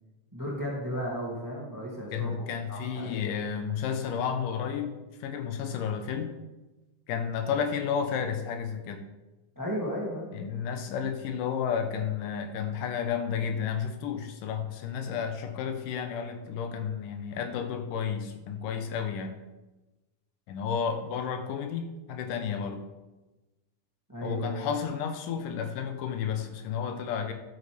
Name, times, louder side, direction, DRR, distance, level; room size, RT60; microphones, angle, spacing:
voice 1, 0.3-3.5 9.6-10.4 24.1-24.7, equal, 5° right, -4 dB, 1.8 m, -35 dB
voice 2, 2.1-5.0 5.2-6.4 7.1-9.1 10.3-19.4 20.5-22.8 24.2-27.3, left 7 dB, 90° left, 7 dB, 2.6 m, -32 dB
12.0 x 8.4 x 3.5 m, 1.1 s
omnidirectional pair, 3.7 m